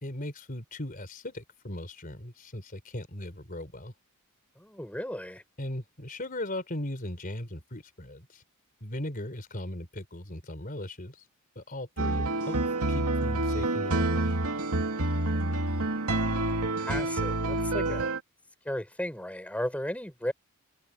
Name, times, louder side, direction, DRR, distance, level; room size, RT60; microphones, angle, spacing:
voice 1, 0.0-3.9 5.6-8.4 8.8-11.3 11.6-12.6 12.9-14.3, left 1 dB, 40° left, 4.1 m, -38 dB
voice 2, 4.6-5.4 16.5-18.1 18.6-20.3, left 1 dB, 5° left, 4.4 m, -35 dB
sound 1, 12.0-18.2, right 2 dB, 85° right, 2.6 m, -28 dB
head